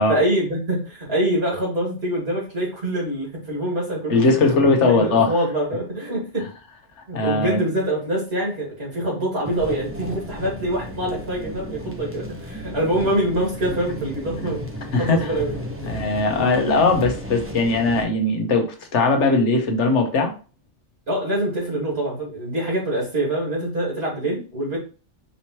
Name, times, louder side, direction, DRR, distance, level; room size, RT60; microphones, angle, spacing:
voice 1, 0.0-6.5 7.1-14.7 15.0-15.9 21.1-24.8, right 1 dB, 55° right, -3 dB, 2.4 m, -25 dB
voice 2, 4.1-5.3 7.1-7.6 14.9-15.3 15.9-20.3, left 3 dB, 75° left, 4 dB, 1.2 m, -19 dB
sound 1, 9.4-18.0, equal, 15° right, 0.7 m, -34 dB
5.4 x 3.0 x 2.9 m, 0.35 s
omnidirectional pair, 1.2 m